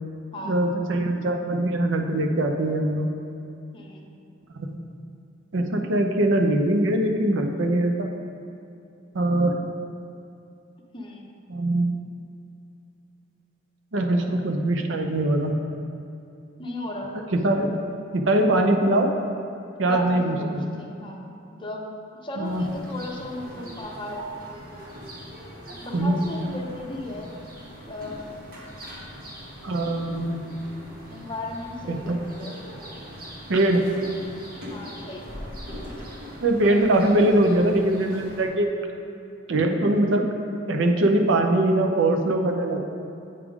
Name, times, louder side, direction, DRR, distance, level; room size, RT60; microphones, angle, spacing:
voice 1, 0.4-3.1 4.5-4.8 5.5-8.1 9.1-9.6 11.5-12.0 13.9-15.6 17.1-17.7 18.1-19.1 19.8-20.4 22.4-22.7 25.9-26.2 29.6-30.5 31.9-32.2 33.5-33.8 36.4-38.7 39.5-40.3 40.7-42.8, right 1 dB, 80° right, 3 dB, 0.6 m, -22 dB
voice 2, 3.7-4.1 10.9-11.3 16.6-17.1 19.9-24.3 25.8-27.3 27.7-28.5 31.1-32.6 34.7-35.5, left 1 dB, 25° left, 0 dB, 0.7 m, -36 dB
sound 1, 22.4-38.5, equal, 55° right, 1.3 m, -41 dB
8.4 x 3.6 x 4.9 m, 2.6 s
head